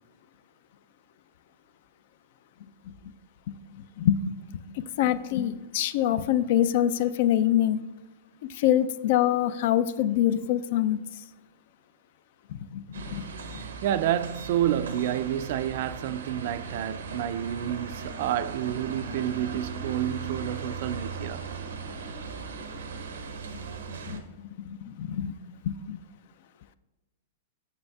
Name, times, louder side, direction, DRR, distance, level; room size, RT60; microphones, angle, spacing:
voice 1, 3.5-4.2 4.7-7.8 8.5-11.0 12.5-13.3 13.5-13.7 24.1-24.2 24.6-25.4 25.6-26.0, left 11 dB, 60° left, 0.3 m, -25 dB
sound 1, 12.9-24.2, right 5 dB, 85° right, 0.7 m, -38 dB
voice 2, 13.6-21.4, right 11 dB, 60° right, 0.3 m, -29 dB
7.7 x 5.6 x 2.3 m
hypercardioid pair, 125°, 0 cm